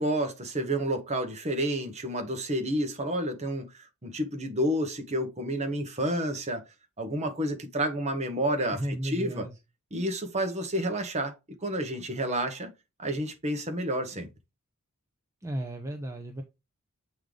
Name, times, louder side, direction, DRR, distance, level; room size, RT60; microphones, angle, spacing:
voice 1, 0.0-6.7 7.0-9.5 9.9-12.7 13.0-14.3, right 1 dB, 30° right, 1.2 m, -30 dB
voice 2, 8.8-9.6 15.4-16.4, right 1 dB, 15° right, 0.7 m, -34 dB
7.7 x 3.8 x 3.3 m
head